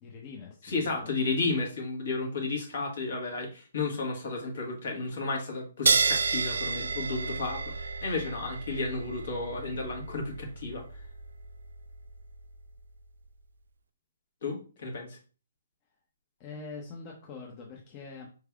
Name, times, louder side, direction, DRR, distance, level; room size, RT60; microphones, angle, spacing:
voice 1, 0.0-1.1 16.4-18.3, left 4 dB, 30° left, 0 dB, 0.8 m, -44 dB
voice 2, 0.6-10.8 14.4-15.2, left 3 dB, 60° left, 1 dB, 1.5 m, -33 dB
sound 1, 5.9-12.8, right 4 dB, 75° right, 0.3 m, -31 dB
4.6 x 3.3 x 2.3 m, 0.36 s
figure-of-eight pair, 135°, 0 cm